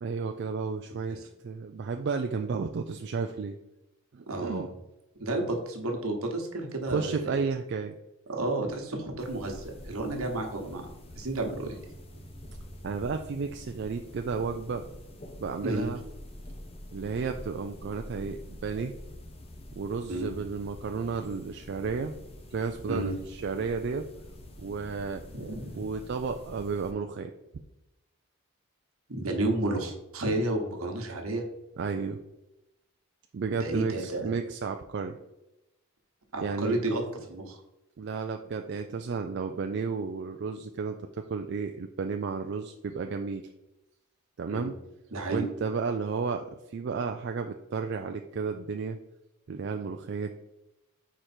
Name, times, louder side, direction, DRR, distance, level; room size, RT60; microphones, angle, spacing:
voice 1, 0.0-1.2 1.4-3.6 4.1-4.7 6.9-7.9 12.8-14.8 15.4-16.0 16.9-18.9 19.7-22.1 22.5-24.1 24.6-25.2 25.7-27.3 31.8-32.2 33.3-35.2 36.4-36.8 38.0-43.4 44.4-44.7 45.3-49.0 49.5-50.3, right 5 dB, 50° right, 5 dB, 0.3 m, -32 dB
voice 2, 4.3-4.6 5.2-7.4 8.3-11.8 15.6-15.9 20.1-20.3 22.9-23.2 25.3-25.8 29.1-31.4 33.6-34.3 36.3-37.6 44.5-44.7 45.1-45.4, right 2 dB, 75° right, 2 dB, 1.2 m, -31 dB
sound 1, 9.2-26.9, left 1 dB, 25° left, 0.6 m, -46 dB
sound 2, 11.5-14.3, right 1 dB, 90° left, 1.9 m, -55 dB
5.0 x 4.6 x 4.3 m, 0.92 s
head